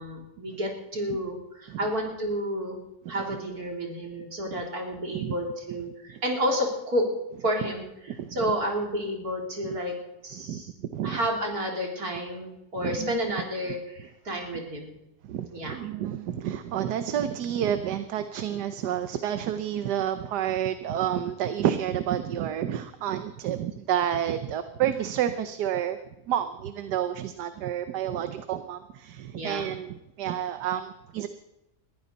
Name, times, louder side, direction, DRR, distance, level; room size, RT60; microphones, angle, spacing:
voice 1, 0.0-2.8 3.1-7.0 7.4-7.8 8.3-10.0 10.2-10.7 11.0-14.9 15.5-15.8 29.3-29.7, equal, 60° right, 0 dB, 3.9 m, -30 dB
voice 2, 8.1-8.5 9.6-9.7 10.4-10.6 10.9-11.2 12.7-13.2 15.2-26.0 26.3-31.3, right 10 dB, 80° right, 10 dB, 1.4 m, -30 dB
21.5 x 14.5 x 4.0 m, 0.90 s
omnidirectional pair, 1.7 m